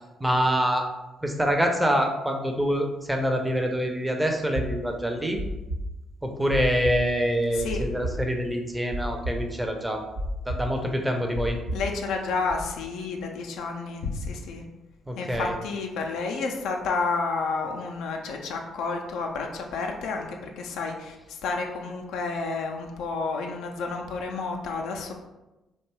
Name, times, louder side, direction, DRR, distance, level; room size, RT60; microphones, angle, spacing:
voice 1, 0.2-0.9 1.2-5.4 6.2-10.0 10.5-11.6 15.1-15.5, equal, 10° right, 2 dB, 0.5 m, -25 dB
sound 1, 4.5-12.5, equal, 80° right, 0.6 m, -32 dB
voice 2, 7.5-7.8 11.7-14.6 15.2-25.1, left 4 dB, 70° left, 3 dB, 0.3 m, -30 dB
2.6 x 2.2 x 2.9 m, 1.0 s
hypercardioid pair, 45°, 0 cm